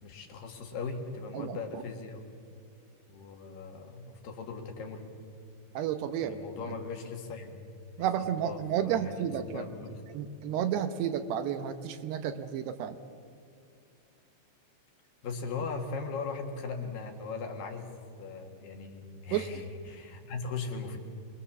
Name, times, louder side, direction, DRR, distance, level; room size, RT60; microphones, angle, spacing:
voice 1, 0.0-2.2 3.1-5.0 6.2-7.7 8.0-9.2 9.5-10.2 15.2-21.0, left 4 dB, 60° left, 3 dB, 3.2 m, -39 dB
voice 2, 1.3-1.8 5.7-6.4 8.0-9.6 10.1-13.0 19.3-19.5, right 9 dB, 75° right, 9 dB, 2.9 m, -31 dB
26.0 x 21.5 x 7.2 m, 2.4 s
omnidirectional pair, 5.0 m